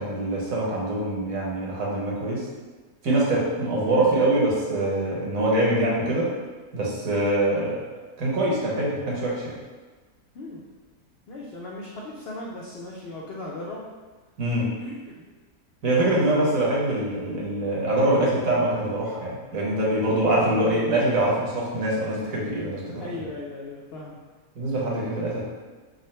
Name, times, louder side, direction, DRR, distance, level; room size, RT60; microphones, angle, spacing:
voice 1, 0.0-2.5 3.0-6.3 6.7-7.8 8.2-9.5 14.4-14.7 15.8-23.3 24.6-25.4, right 1 dB, 65° right, -5 dB, 1.2 m, -24 dB
voice 2, 11.3-13.9 14.8-15.2 16.1-16.4 20.3-21.0 23.0-24.2, left 2 dB, 85° left, -4 dB, 0.5 m, -37 dB
3.8 x 2.0 x 4.1 m, 1.3 s
omnidirectional pair, 1.6 m